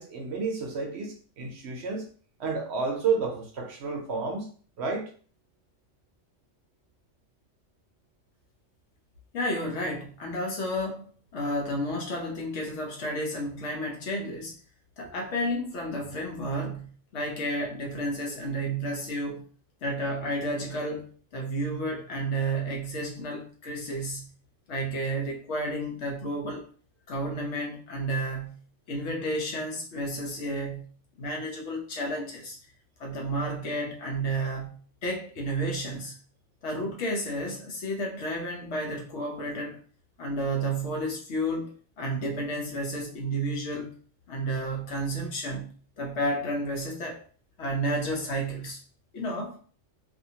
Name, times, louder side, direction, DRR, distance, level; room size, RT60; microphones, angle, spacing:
voice 1, 0.0-2.0 2.4-4.5 4.8-5.1, right 4 dB, 65° right, 1 dB, 0.8 m, -31 dB
voice 2, 9.3-14.5 15.0-19.4 19.8-24.3 24.7-26.7 27.1-28.6 28.9-30.9 31.2-32.6 33.0-36.2 36.6-39.8 40.2-44.0 44.3-47.2 47.6-48.8 49.1-49.6, right 1 dB, 65° left, 0 dB, 1.0 m, -31 dB
2.6 x 2.5 x 2.7 m, 0.43 s
omnidirectional pair, 1.3 m